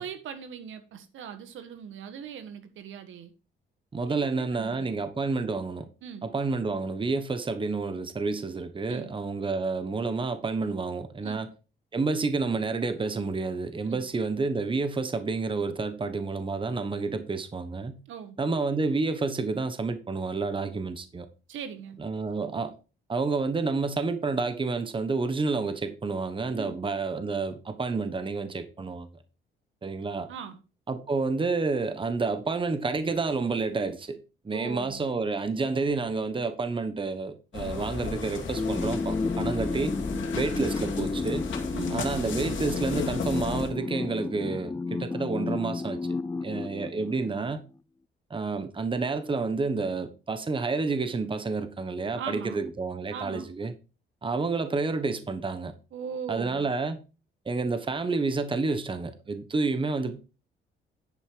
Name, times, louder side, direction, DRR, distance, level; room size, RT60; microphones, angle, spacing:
voice 1, 0.0-3.3 4.1-4.9 6.0-6.3 8.9-9.1 11.2-11.4 13.9-14.0 18.1-18.4 21.5-22.0 26.6-26.8 30.3-30.6 34.5-35.0 41.7-42.0 52.2-52.6 53.1-53.5 55.9-56.7, right 7 dB, 80° right, 1.6 m, -39 dB
voice 2, 3.9-5.9 6.2-11.5 11.9-18.0 18.4-21.3 22.0-22.7 23.1-29.2 29.8-30.3 30.9-34.2 34.4-40.0 40.3-41.5 41.9-46.0 46.4-47.6 48.3-53.7 54.2-55.7 56.3-57.0 57.4-60.2, right 4 dB, 25° right, 1.3 m, -29 dB
sound 1, 37.5-43.7, left 5 dB, 70° left, 2.5 m, -35 dB
sound 2, 38.6-47.6, left 3 dB, 15° left, 0.4 m, -32 dB
11.0 x 5.6 x 4.7 m
cardioid pair, 90°, 20 cm